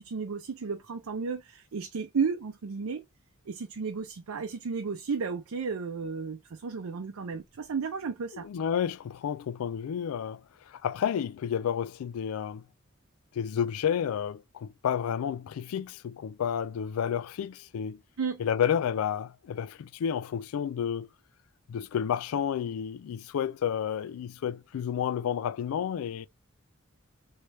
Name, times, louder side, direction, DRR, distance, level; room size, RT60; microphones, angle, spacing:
voice 1, 0.0-3.0 3.5-8.5 18.2-18.4, right 5 dB, 90° right, 0.5 m, -33 dB
voice 2, 8.3-12.6 13.3-18.0 18.4-21.1 21.7-26.3, left 8 dB, 85° left, 0.3 m, -31 dB
3.2 x 3.2 x 2.7 m
head